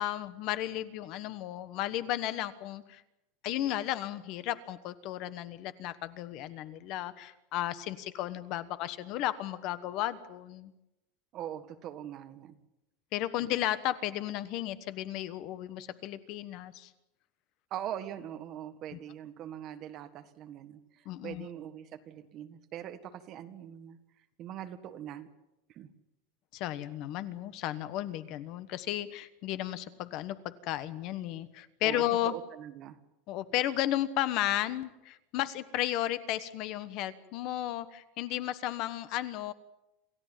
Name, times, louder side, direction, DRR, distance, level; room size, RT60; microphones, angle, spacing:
voice 1, 0.0-3.0 3.4-10.7 13.1-16.9 21.0-21.5 26.5-32.3 33.3-39.5, left 13 dB, 40° left, 14 dB, 1.2 m, -34 dB
voice 2, 11.3-12.6 13.4-13.5 17.7-24.0 24.4-25.3 25.7-25.9 31.8-33.0, right 10 dB, 30° right, 9 dB, 1.7 m, -42 dB
28.0 x 15.5 x 9.2 m, 0.91 s
supercardioid pair, 180°, 0 cm